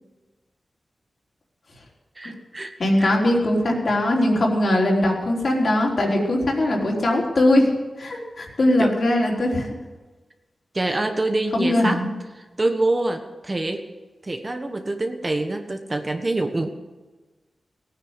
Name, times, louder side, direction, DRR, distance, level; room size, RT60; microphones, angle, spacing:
voice 1, 2.1-2.7 3.0-3.1 8.8-8.9 10.7-12.1 12.3-13.8 14.2-16.7, right 2 dB, 30° right, 5 dB, 1.3 m, -25 dB
voice 2, 2.8-9.7 11.5-12.1, left 1 dB, 55° left, -2 dB, 4.0 m, -20 dB
18.5 x 9.6 x 8.1 m, 1.2 s
wide cardioid pair, 125°, 0 cm